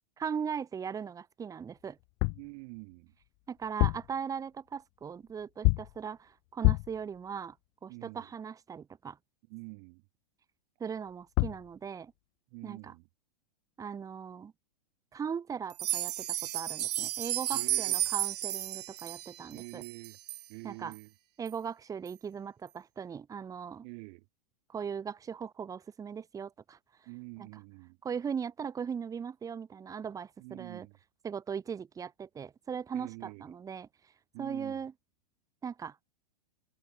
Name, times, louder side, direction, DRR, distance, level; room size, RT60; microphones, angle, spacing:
voice 1, 0.2-2.0 3.5-7.5 7.8-9.2 10.8-12.1 12.6-12.9 13.8-14.5 15.1-19.8 20.6-20.9 21.4-23.8 24.7-26.8 27.4-27.5 28.0-30.9 31.2-33.9 34.4-34.9 35.6-36.0, right 7 dB, 15° right, 2.7 m, -39 dB
sound 1, 2.0-2.5 3.6-4.2 5.6-6.0 6.6-7.0 11.1-11.2 11.4-11.7, left 40 dB or more, 35° left, 0.5 m, -27 dB
voice 2, 2.3-3.1 7.9-8.3 9.5-10.0 12.5-13.1 17.5-18.1 19.5-20.2 20.5-21.1 23.8-24.2 27.1-28.0 30.4-31.0 32.9-33.5 34.3-34.8, right 36 dB, 45° right, 2.9 m, -46 dB
sound 2, 15.7-20.4 20.9-21.0 21.5-21.6 22.1-22.2, right 14 dB, 70° right, 0.6 m, -33 dB
hypercardioid pair, 135°, 21 cm